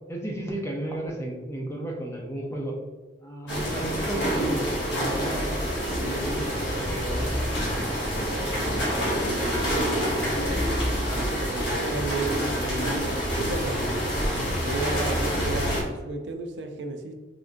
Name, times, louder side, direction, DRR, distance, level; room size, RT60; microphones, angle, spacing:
voice 1, 0.1-2.8 3.2-7.4, right 1 dB, 15° left, -1 dB, 0.7 m, -34 dB
sound 1, 3.5-15.8, equal, 70° left, 1.2 m, -27 dB
voice 2, 6.0-6.4 8.1-10.8 11.1-14.1 14.6-17.1, right 2 dB, 75° right, 5 dB, 0.5 m, -34 dB
3.6 x 3.5 x 2.6 m, 1.3 s
head